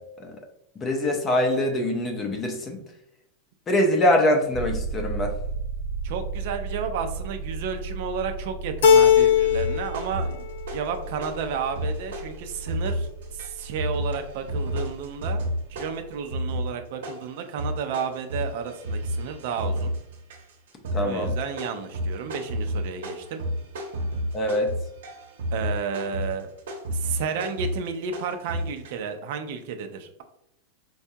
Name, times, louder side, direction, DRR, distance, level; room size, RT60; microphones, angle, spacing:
voice 1, 0.8-2.8 3.7-5.3 20.9-21.4 24.3-24.7, left 1 dB, 20° left, 3 dB, 0.5 m, -23 dB
sound 1, 4.5-16.5, right 4 dB, 15° right, 0.9 m, -36 dB
voice 2, 6.0-10.4 10.7-15.4 15.7-19.9 21.0-23.4 25.5-26.5 26.9-30.2, right 6 dB, 55° right, 7 dB, 0.4 m, -32 dB
Keyboard (musical), 8.8-9.9 10.2-11.0, left 8 dB, 75° left, 0.4 m, -18 dB
sound 2, 9.5-11.0 11.2-28.9, equal, 80° right, 0.8 m, -31 dB
4.7 x 2.2 x 2.7 m, 0.80 s
supercardioid pair, 165°, 0 cm